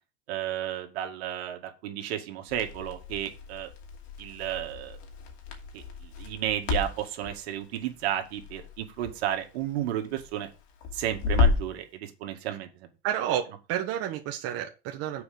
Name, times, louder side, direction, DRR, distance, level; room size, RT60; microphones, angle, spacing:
voice 1, 0.3-3.7 4.2-5.0 5.7-5.8 6.2-10.5 10.9-12.7, right 11 dB, 80° right, 5 dB, 2.1 m, -32 dB
Crackle, 2.5-11.8, left 4 dB, 75° left, 2.7 m, -32 dB
voice 2, 13.0-15.2, right 10 dB, 50° right, 3 dB, 1.3 m, -30 dB
7.0 x 5.0 x 6.8 m, 0.31 s
supercardioid pair, 135°, 32 cm